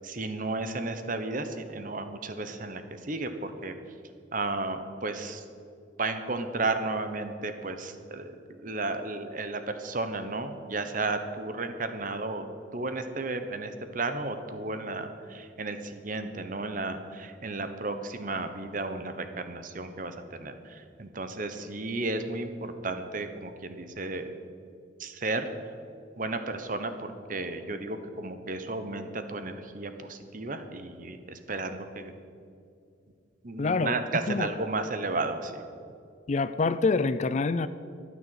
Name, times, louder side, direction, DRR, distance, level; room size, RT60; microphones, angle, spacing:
voice 1, 0.0-3.7 4.3-5.4 6.0-12.4 12.7-24.3 25.0-25.5 26.2-32.1 33.4-35.6, right 3 dB, 40° right, 8 dB, 1.1 m, -33 dB
voice 2, 33.6-34.0 34.3-34.5 36.3-37.7, left 3 dB, 35° left, 13 dB, 0.4 m, -26 dB
13.5 x 9.5 x 8.0 m, 2.4 s
head